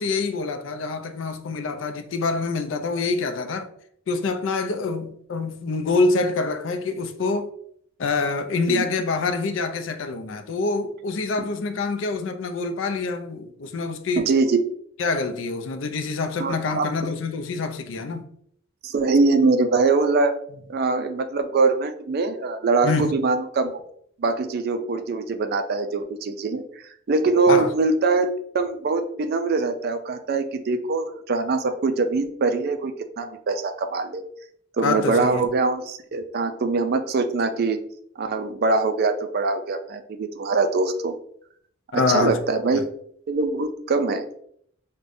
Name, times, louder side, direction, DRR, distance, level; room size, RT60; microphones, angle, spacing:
voice 1, 0.0-3.7 4.1-7.5 8.0-14.3 15.0-18.3 22.8-23.1 27.5-27.7 34.8-35.5 41.9-42.4 42.7-42.8, left 3 dB, 65° left, 0.4 m, -26 dB
voice 2, 14.3-14.6 16.4-16.9 18.8-20.3 20.7-23.7 24.2-28.3 28.5-34.2 34.8-37.8 38.2-41.1 41.9-42.8 43.3-44.2, right 3 dB, 50° right, 0.4 m, -23 dB
4.8 x 2.2 x 2.5 m
head